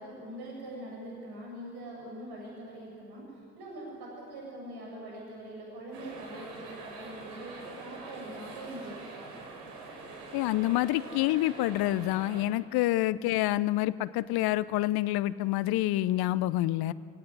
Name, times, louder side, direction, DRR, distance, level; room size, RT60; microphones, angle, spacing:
voice 1, 0.0-9.3, right 1 dB, 55° right, -2 dB, 7.8 m, -43 dB
sound 1, 5.9-12.4, right 3 dB, 75° right, 4.6 m, -45 dB
voice 2, 10.3-16.9, left 16 dB, 50° left, 17 dB, 0.9 m, -27 dB
29.0 x 17.5 x 9.8 m, 2.4 s
figure-of-eight pair, 55°, 47 cm